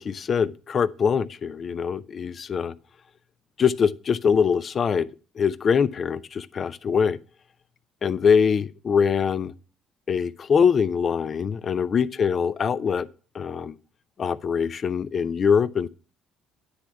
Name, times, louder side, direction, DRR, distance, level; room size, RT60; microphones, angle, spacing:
voice 1, 0.0-2.7 3.6-5.1 5.4-7.2 8.0-9.5 10.1-13.1 13.3-13.8 14.2-15.9, left 6 dB, 45° left, 0.5 m, -23 dB
9.7 x 3.5 x 7.1 m
hypercardioid pair, 65°, 0 cm